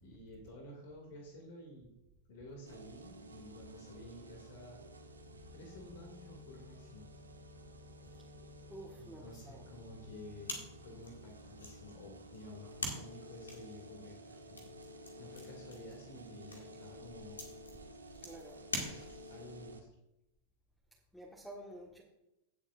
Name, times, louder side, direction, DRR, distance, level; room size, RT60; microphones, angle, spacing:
voice 1, 0.0-1.9 2.3-4.8 5.5-7.1 9.0-17.4 19.3-19.9, left 1 dB, 55° left, 1 dB, 2.5 m, -52 dB
sound 1, 2.7-19.8, equal, 75° right, 1.0 m, -53 dB
voice 2, 8.7-9.7 17.7-17.8 18.2-18.7 21.1-22.0, right 1 dB, 5° left, -3 dB, 1.6 m, -51 dB
sound 2, 10.4-19.5, left 2 dB, 75° left, 2.3 m, -46 dB
17.5 x 7.4 x 2.6 m, 0.91 s
figure-of-eight pair, 90°, 0 cm